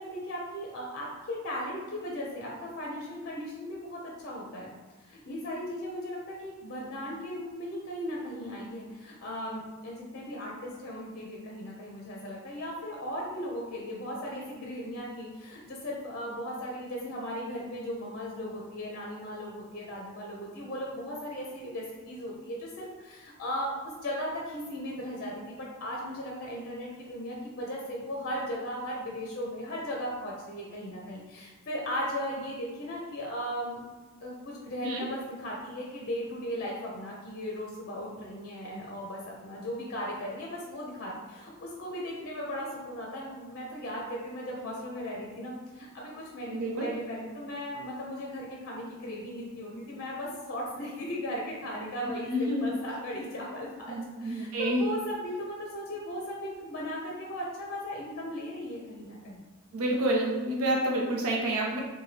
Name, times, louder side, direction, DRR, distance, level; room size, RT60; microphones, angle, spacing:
voice 1, 0.0-4.7 5.0-33.8 34.2-59.4, equal, 45° left, -3 dB, 0.6 m, -37 dB
voice 2, 46.5-46.9 52.0-52.7 53.9-54.9 59.7-61.8, right 1 dB, 80° right, -1 dB, 0.6 m, -29 dB
4.1 x 2.2 x 3.2 m, 1.2 s
head